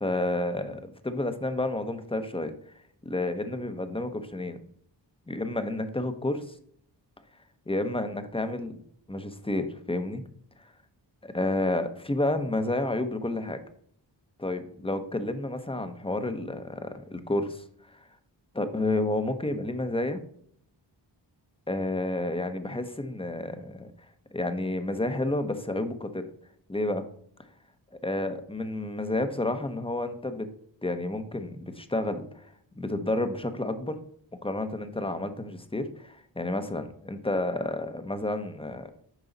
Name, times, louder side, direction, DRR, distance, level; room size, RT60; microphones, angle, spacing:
voice 1, 0.0-2.5 3.0-4.6 5.3-6.5 7.7-8.7 9.1-10.2 10.6-10.7 11.2-13.6 14.4-18.1 18.5-20.2 21.7-23.9 24.3-26.3 26.7-27.0 28.0-30.5 30.8-34.0 34.4-38.9, left 2 dB, 10° left, 9 dB, 1.0 m, -30 dB
9.1 x 5.6 x 4.1 m, 0.63 s
wide cardioid pair, 70°, 45 cm